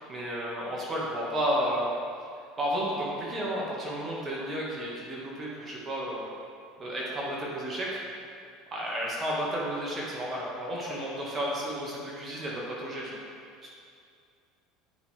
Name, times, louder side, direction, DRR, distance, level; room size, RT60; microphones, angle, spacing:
voice 1, 0.1-1.9 2.6-6.2 6.8-8.0 8.7-13.2 13.6-13.7, equal, 30° right, -5 dB, 1.7 m, -32 dB
10.0 x 5.1 x 3.4 m, 2.3 s
hypercardioid pair, 70°, 0 cm